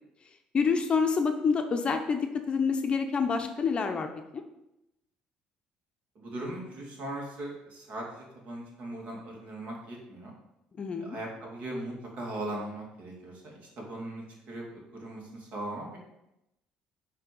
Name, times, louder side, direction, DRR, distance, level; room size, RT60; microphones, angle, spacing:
voice 1, 0.5-2.2 2.5-4.1 10.8-11.2, left 5 dB, 35° left, 6 dB, 0.7 m, -27 dB
voice 2, 6.2-10.3 11.0-16.0, right 1 dB, 55° right, -1 dB, 2.4 m, -39 dB
6.7 x 3.4 x 6.0 m, 0.88 s
cardioid pair, 110°, 3 cm